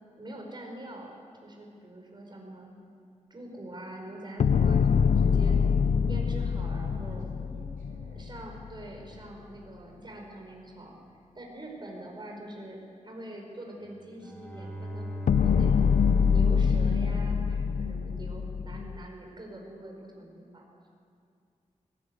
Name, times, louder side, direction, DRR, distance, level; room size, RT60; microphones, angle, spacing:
voice 1, 0.2-1.1 1.4-2.7 3.3-5.6 6.0-7.3 8.1-10.9 11.3-12.8 13.0-15.9 16.2-20.6, right 1 dB, 35° right, 0 dB, 5.1 m, -44 dB
sound 1, 4.4-8.7 15.3-19.0, left 6 dB, 70° left, 0.5 m, -25 dB
voice 2, 6.8-8.3, right 2 dB, 90° right, -3 dB, 3.1 m, -53 dB
Bowed string instrument, 14.0-18.1, equal, 10° left, 4.3 m, -40 dB
19.0 x 17.5 x 8.2 m, 2.4 s
wide cardioid pair, 95°, 13 cm